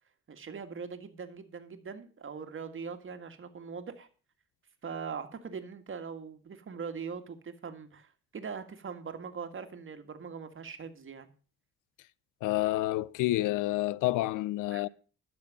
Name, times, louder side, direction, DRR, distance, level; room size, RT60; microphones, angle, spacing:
voice 1, 0.3-4.1 4.8-11.3 14.7-14.8, right 6 dB, 40° right, 1.9 m, -41 dB
voice 2, 12.4-14.9, left 17 dB, 90° left, 0.6 m, -29 dB
12.0 x 6.3 x 7.5 m
cardioid pair, 90°, 30 cm